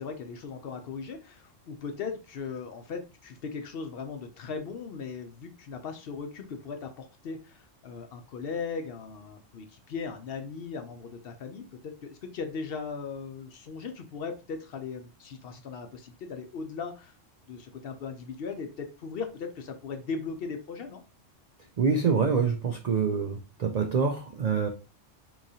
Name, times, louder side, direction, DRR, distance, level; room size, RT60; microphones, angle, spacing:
voice 1, 0.0-17.1 17.5-21.0, left 5 dB, 60° left, 6 dB, 0.7 m, -38 dB
voice 2, 21.8-24.7, right 5 dB, 80° right, 3 dB, 0.3 m, -26 dB
3.8 x 3.0 x 2.7 m, 0.31 s
omnidirectional pair, 1.3 m